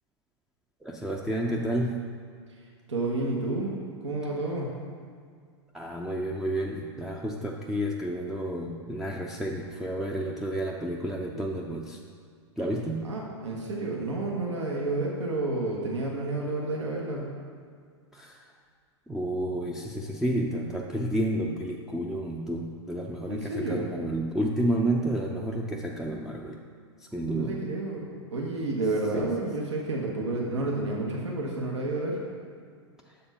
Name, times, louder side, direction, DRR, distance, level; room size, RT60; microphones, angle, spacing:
voice 1, 0.8-2.1 5.7-12.0 12.6-13.1 18.1-18.4 19.1-26.6 27.0-27.6 29.1-29.3, right 1 dB, 5° right, -2 dB, 0.4 m, -30 dB
voice 2, 2.9-3.7 4.0-4.7 13.0-17.3 23.3-23.9 27.3-32.2, right 2 dB, 80° right, -2 dB, 1.1 m, -30 dB
6.6 x 4.3 x 5.5 m, 2.1 s
hypercardioid pair, 100°, 15 cm